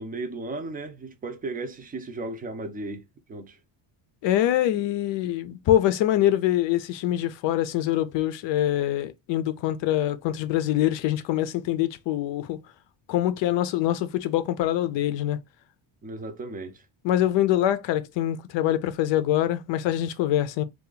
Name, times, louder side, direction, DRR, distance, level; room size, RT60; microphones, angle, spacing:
voice 1, 0.0-3.0 3.3-3.6 16.0-16.8, right 2 dB, 20° right, 0.5 m, -35 dB
voice 2, 4.2-12.6 13.1-15.4 17.0-20.6, left 12 dB, 65° left, 0.6 m, -24 dB
2.8 x 2.5 x 3.7 m
cardioid pair, 145°, 48 cm